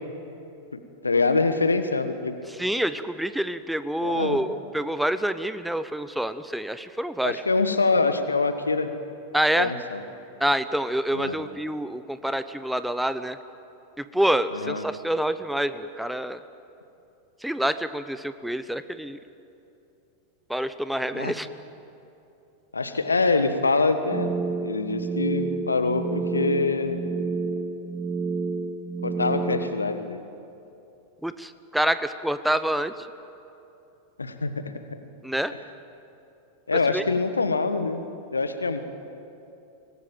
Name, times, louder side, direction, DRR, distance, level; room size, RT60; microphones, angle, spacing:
voice 1, 1.0-2.3 4.0-4.4 7.2-8.9 9.6-10.0 11.1-11.4 14.5-14.8 21.1-21.3 22.7-24.3 24.6-27.0 29.0-30.2 34.2-34.7 36.7-38.0 38.3-38.8, left 3 dB, 75° left, 9 dB, 1.5 m, -24 dB
voice 2, 2.5-7.4 9.3-9.7 10.4-13.4 14.0-16.4 17.4-19.2 20.5-21.5 31.2-33.1 35.2-35.5 36.9-37.0, right 1 dB, ahead, 12 dB, 0.8 m, -27 dB
sound 1, 24.1-29.8, right 4 dB, 25° right, 1.0 m, -29 dB
24.5 x 19.5 x 9.1 m, 2.8 s
figure-of-eight pair, 90°, 0 cm